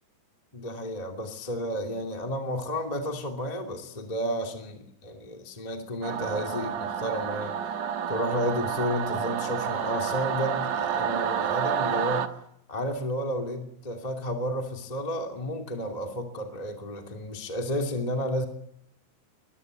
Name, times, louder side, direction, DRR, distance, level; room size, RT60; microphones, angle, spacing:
voice 1, 0.5-7.6 8.1-12.2 12.7-18.5, equal, 10° left, 3 dB, 2.2 m, -32 dB
Singing / Musical instrument, 6.0-12.3, right 8 dB, 60° right, 2.0 m, -29 dB
22.5 x 22.0 x 8.1 m, 0.76 s
omnidirectional pair, 4.4 m